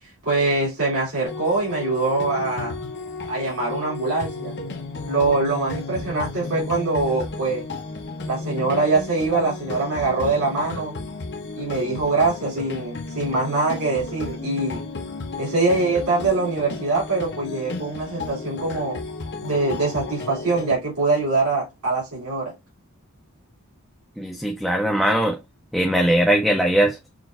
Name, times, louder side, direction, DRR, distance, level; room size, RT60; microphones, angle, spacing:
voice 1, 0.0-2.7 3.3-4.5 5.1-7.7 8.3-11.0 11.6-14.8 15.4-19.0 19.4-22.5, right 3 dB, 90° right, 2.9 m, -23 dB
sound 1, 1.2-20.7, left 3 dB, 50° left, 0.8 m, -33 dB
voice 2, 24.2-25.4 25.7-27.0, right 1 dB, ahead, 0.5 m, -20 dB
6.1 x 2.6 x 2.4 m
head